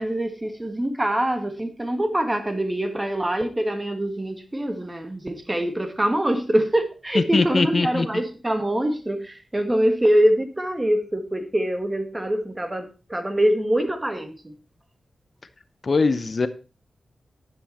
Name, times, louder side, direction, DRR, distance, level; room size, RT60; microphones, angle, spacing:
voice 1, 0.0-14.5, right 1 dB, 20° right, 1.7 m, -24 dB
voice 2, 7.3-8.1 15.8-16.5, left 3 dB, 50° left, 0.7 m, -21 dB
10.0 x 8.0 x 4.2 m
wide cardioid pair, 80°, 0 cm